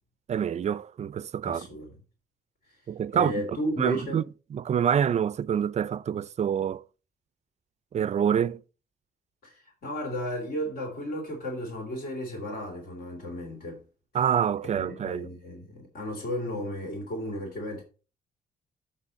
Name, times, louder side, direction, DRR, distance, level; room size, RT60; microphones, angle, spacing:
voice 1, 0.3-1.7 2.9-3.4 3.8-4.2 4.5-6.8 7.9-8.6 14.1-15.3, right 8 dB, 40° right, 0.4 m, -26 dB
voice 2, 1.4-2.0 3.1-4.2 9.4-13.8 14.7-17.8, equal, 65° left, 3.3 m, -34 dB
7.4 x 6.2 x 4.1 m
cardioid pair, 100°, 17 cm